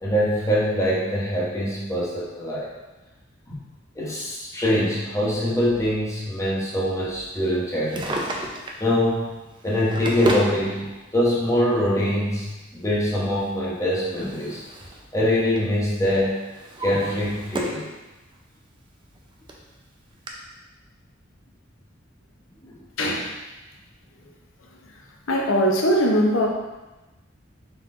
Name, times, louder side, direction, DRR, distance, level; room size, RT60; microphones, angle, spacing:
voice 1, 0.0-2.7 3.5-3.6 4.0-8.2 8.8-9.4 9.6-14.6 15.1-16.4 16.8-17.9 22.6-22.7, left 1 dB, 15° left, -6 dB, 0.9 m, -23 dB
Drawer open or close, 7.7-8.9 9.6-10.6 11.6-11.7 13.5-15.0 15.3-15.7 16.2-17.9 18.3-18.4 19.2-19.3 19.5-19.6 20.3-20.4, right 1 dB, 25° right, 0.4 m, -31 dB
voice 2, 23.0-23.3 25.3-26.5, equal, 85° left, 0 dB, 0.7 m, -20 dB
4.1 x 2.9 x 3.7 m, 1.1 s
head